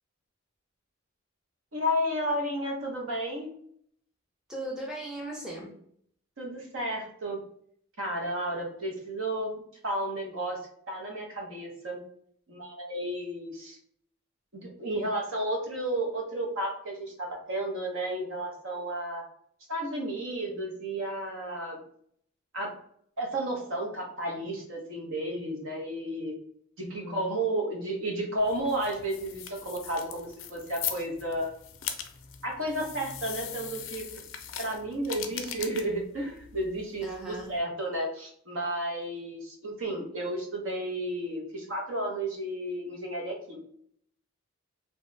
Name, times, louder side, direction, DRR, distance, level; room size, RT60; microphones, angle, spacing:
voice 1, 1.7-3.5 6.4-7.4 8.0-9.5 9.8-10.6 10.9-12.0 12.5-13.8 14.5-19.2 19.7-21.8 22.5-22.7 23.2-26.3 26.8-31.5 32.4-34.0 34.6-43.6, right 1 dB, 65° right, 0 dB, 0.8 m, -32 dB
voice 2, 4.5-5.7 26.8-27.4 37.0-37.5, right 1 dB, 5° right, -4 dB, 0.6 m, -38 dB
sound 1, 28.4-37.6, left 9 dB, 65° left, 0.4 m, -40 dB
2.9 x 2.2 x 3.2 m, 0.65 s
head